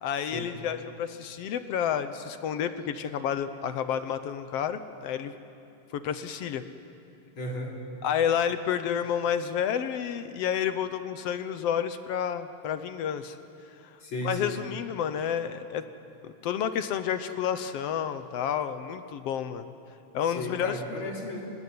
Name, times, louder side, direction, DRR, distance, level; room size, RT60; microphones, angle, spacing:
voice 1, 0.0-5.3 5.9-6.6 8.0-13.4 14.2-15.8 16.2-19.7 20.1-20.8, left 8 dB, 65° left, 10 dB, 1.7 m, -30 dB
voice 2, 7.4-7.8 14.0-14.5 20.3-21.4, left 1 dB, 40° left, -2 dB, 4.4 m, -34 dB
25.5 x 19.0 x 9.6 m, 2.7 s
omnidirectional pair, 3.4 m